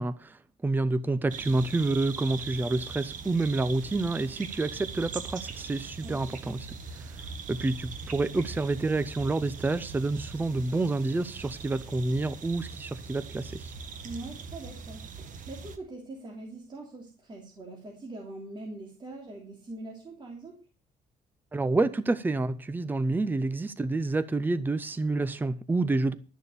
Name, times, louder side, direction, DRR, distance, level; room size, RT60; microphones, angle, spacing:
voice 1, 0.0-6.7 7.5-13.7 21.5-26.1, right 2 dB, 10° right, 0.6 m, -28 dB
sound 1, 1.3-15.8, right 5 dB, 50° right, 1.7 m, -41 dB
voice 2, 6.0-6.4 14.0-20.6, right 2 dB, 30° right, 3.1 m, -43 dB
12.5 x 6.9 x 6.8 m
cardioid pair, 150°, 17 cm